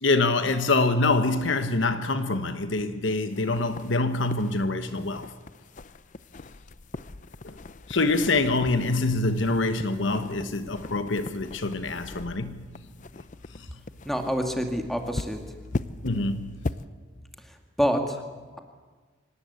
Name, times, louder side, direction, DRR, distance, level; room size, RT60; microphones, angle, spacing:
voice 1, 0.0-5.3 7.4-7.6 7.9-12.6 13.6-13.7 16.0-16.6, left 2 dB, 65° left, 1.2 m, -25 dB
sound 1, 3.3-16.9, left 2 dB, 40° left, 0.6 m, -40 dB
voice 2, 14.1-15.4 17.8-18.2, equal, ahead, 2.2 m, -26 dB
25.0 x 18.5 x 8.3 m
head